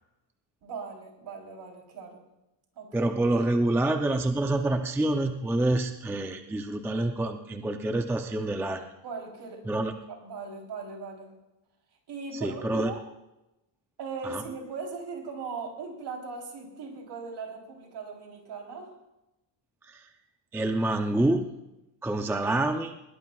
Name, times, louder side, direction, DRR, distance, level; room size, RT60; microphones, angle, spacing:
voice 1, 0.6-2.2 2.7-3.1 9.0-9.8 10.1-11.3 12.1-13.0 14.0-18.9, right 4 dB, 55° right, 1 dB, 3.4 m, -39 dB
voice 2, 2.9-8.9 9.7-9.9 12.3-12.9 14.2-14.4 19.9-20.1 20.5-21.5 22.0-23.0, right 2 dB, 5° right, 5 dB, 0.4 m, -27 dB
21.0 x 18.0 x 2.3 m, 0.94 s
cardioid pair, 170°, 49 cm